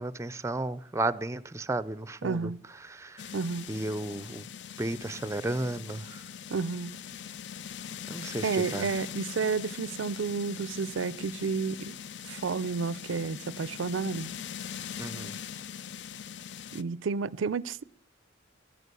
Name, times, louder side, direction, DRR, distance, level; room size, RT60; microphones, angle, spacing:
voice 1, 0.0-2.5 2.8-3.3 3.7-4.5 4.8-6.2 8.1-8.9 15.0-15.3, right 2 dB, 15° right, 0.5 m, -33 dB
voice 2, 2.2-2.6 3.3-3.7 6.5-6.9 8.4-11.9 12.3-14.3 16.7-17.8, right 5 dB, 75° right, 0.5 m, -31 dB
sound 1, 3.2-16.8, left 8 dB, 60° left, 0.5 m, -41 dB
14.0 x 11.0 x 6.8 m
head